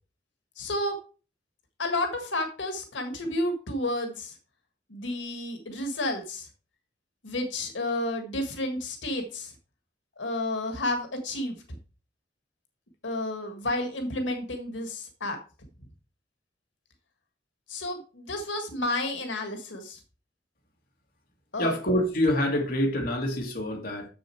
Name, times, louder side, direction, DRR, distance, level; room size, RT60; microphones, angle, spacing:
voice 1, 0.6-1.0 1.8-4.3 4.9-6.5 7.2-9.5 10.2-11.6 13.0-15.4 17.7-20.0 21.5-21.7, left 1 dB, 90° left, 5 dB, 1.7 m, -31 dB
voice 2, 21.6-24.1, left 1 dB, 50° left, 0 dB, 2.1 m, -26 dB
7.0 x 6.9 x 4.5 m, 0.34 s
head